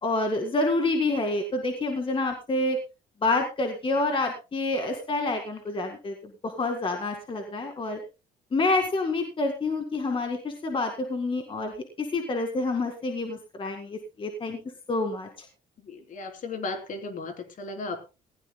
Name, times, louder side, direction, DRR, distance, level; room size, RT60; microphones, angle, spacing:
voice 1, 0.0-2.8 3.2-6.1 6.4-8.0 8.5-14.6 14.9-15.3, left 2 dB, 30° left, 4 dB, 2.0 m, -28 dB
voice 2, 15.8-18.0, left 3 dB, 50° left, 5 dB, 3.4 m, -35 dB
19.5 x 16.0 x 2.2 m, 0.29 s
cardioid pair, 110°, 17 cm